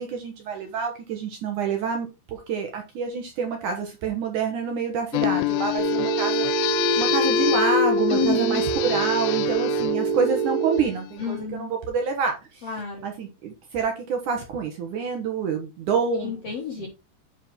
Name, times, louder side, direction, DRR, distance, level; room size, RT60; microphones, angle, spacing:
voice 1, 0.0-6.4 7.0-12.7 13.0-16.4 16.8-16.9, right 6 dB, 65° right, 3 dB, 2.2 m, -27 dB
sound 1, 5.1-11.2, left 18 dB, 90° left, 2.7 m, -26 dB
Telephone, 5.8-10.8, right 7 dB, 20° right, 3.6 m, -25 dB
voice 2, 8.1-8.6 11.2-11.7 12.6-13.1 16.2-16.9, left 4 dB, 55° left, 0 dB, 1.7 m, -29 dB
9.7 x 4.9 x 3.7 m, 0.27 s
omnidirectional pair, 4.7 m